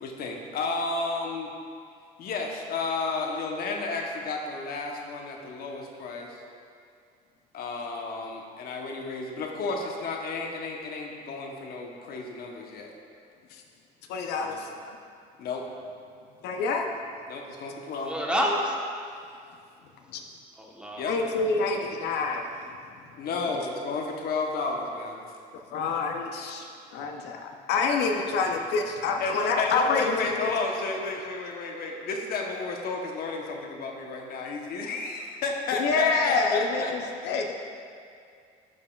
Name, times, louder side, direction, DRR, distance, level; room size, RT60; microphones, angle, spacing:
voice 1, 0.0-1.5 2.2-6.4 7.5-12.9 14.4-14.6 15.4-15.7 17.3-18.1 21.0-21.2 23.2-25.2 29.2-37.1, left 3 dB, 65° left, 1 dB, 0.9 m, -32 dB
voice 2, 14.1-15.0 16.4-16.9 20.1-20.2 21.1-22.8 25.7-26.7 26.9-30.5 35.8-37.5, left 4 dB, 80° left, 3 dB, 0.6 m, -27 dB
voice 3, 18.0-18.8 20.6-21.1, equal, 5° right, -2 dB, 1.0 m, -28 dB
12.0 x 5.3 x 2.3 m, 2.3 s
cardioid pair, 110°, 17 cm